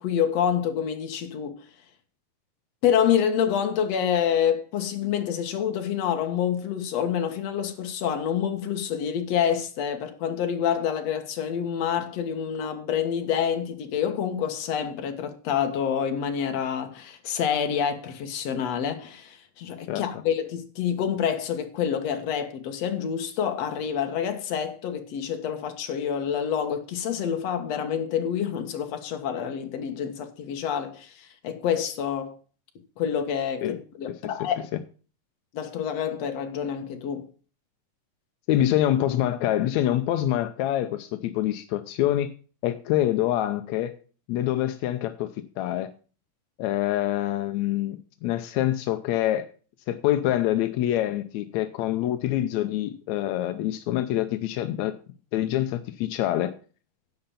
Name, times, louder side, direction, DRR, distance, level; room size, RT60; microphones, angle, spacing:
voice 1, 0.0-1.6 2.8-32.4 33.0-34.6 35.5-37.3, left 8 dB, 55° left, 2.3 m, -27 dB
voice 2, 38.5-42.3 42.6-43.9 44.3-45.9 46.6-48.0 48.2-49.5 49.9-54.9 55.3-56.5, left 13 dB, 75° left, 1.7 m, -25 dB
10.5 x 7.8 x 5.7 m
omnidirectional pair, 4.0 m